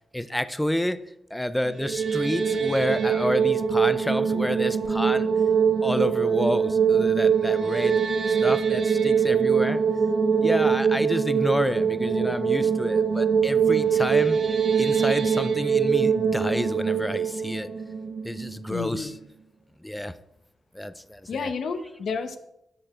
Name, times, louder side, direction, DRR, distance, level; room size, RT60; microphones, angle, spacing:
voice 1, 0.1-1.0 1.3-5.3 5.8-8.0 8.3-9.8 10.4-14.4 14.8-17.7 18.2-19.2 19.8-20.1 20.7-21.5, left 1 dB, 5° left, 14 dB, 0.5 m, -29 dB
sound 1, 1.6-18.8, right 6 dB, 50° right, 1.1 m, -23 dB
voice 2, 18.7-19.2 21.3-22.4, left 5 dB, 65° left, 9 dB, 0.9 m, -30 dB
10.0 x 6.6 x 4.3 m, 0.81 s
cardioid pair, 100°, 0 cm